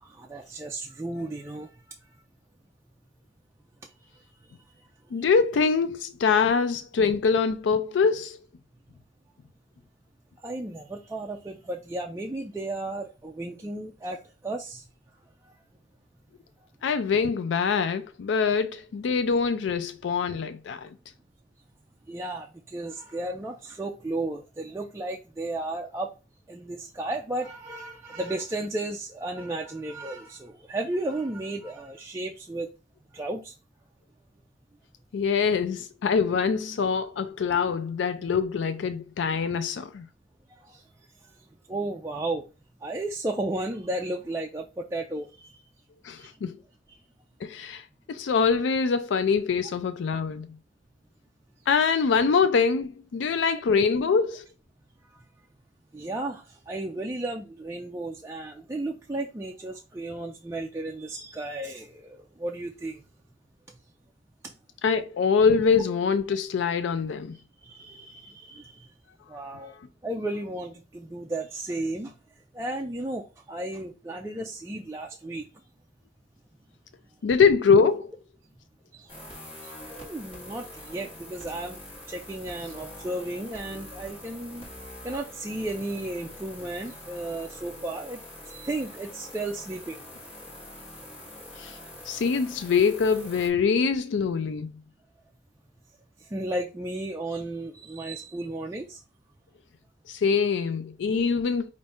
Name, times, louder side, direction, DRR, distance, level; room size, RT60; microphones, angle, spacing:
voice 1, 0.0-1.7 10.4-14.8 22.1-26.1 26.5-32.7 33.1-33.5 40.6-40.8 41.7-42.4 42.8-45.6 46.2-46.3 46.9-47.0 55.9-63.0 64.4-64.5 67.6-68.9 69.3-69.7 70.0-72.1 72.5-75.4 78.9-79.3 79.6-81.8 82.1-84.7 85.0-88.2 88.5-90.0 96.2-99.0, right 2 dB, 15° right, 0.3 m, -34 dB
voice 2, 5.1-8.4 16.8-20.9 35.1-40.0 46.0-46.6 47.4-47.8 48.1-50.5 51.7-54.5 64.8-67.4 77.2-78.1 91.6-91.8 92.1-94.7 100.1-101.7, left 5 dB, 75° left, 0.4 m, -24 dB
sound 1, 79.1-93.5, left 1 dB, 30° left, 1.6 m, -44 dB
5.3 x 2.6 x 3.4 m
head